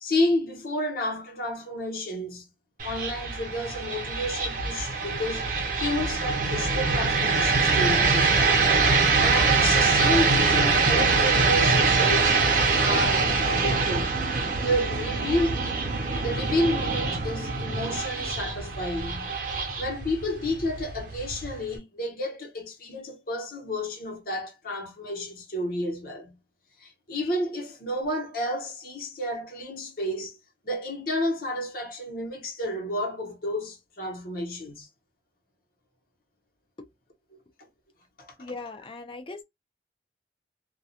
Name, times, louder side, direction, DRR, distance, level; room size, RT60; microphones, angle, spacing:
voice 1, 0.0-2.5 2.8-12.4 12.8-14.1 14.6-15.7 16.2-19.4 19.8-26.4 26.8-30.4 30.6-34.9 38.2-38.3, left 1 dB, 55° left, 1.0 m, -31 dB
sound 1, 2.8-21.8, right 4 dB, 50° right, 0.7 m, -24 dB
voice 2, 38.4-39.4, left 3 dB, 30° left, 0.5 m, -39 dB
2.3 x 2.2 x 2.7 m
head